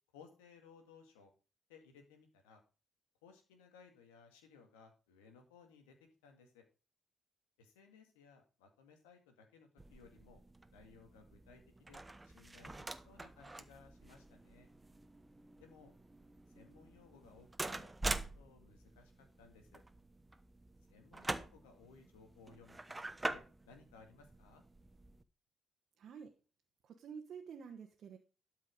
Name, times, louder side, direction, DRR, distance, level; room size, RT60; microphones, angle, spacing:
voice 1, 0.1-1.3 1.7-2.6 3.2-6.0 6.2-6.6 7.6-10.4 10.7-14.7 15.6-15.9 16.5-19.1 19.4-19.8 20.9-22.8 23.3-24.6, left 5 dB, 85° left, 5 dB, 2.0 m, -61 dB
sound 1, 9.8-25.2, right 2 dB, 20° right, 1.0 m, -46 dB
voice 2, 26.0-26.3 26.8-28.2, right 6 dB, 60° right, 3 dB, 1.3 m, -49 dB
12.5 x 5.6 x 5.2 m, 0.33 s
hypercardioid pair, 45°, 0 cm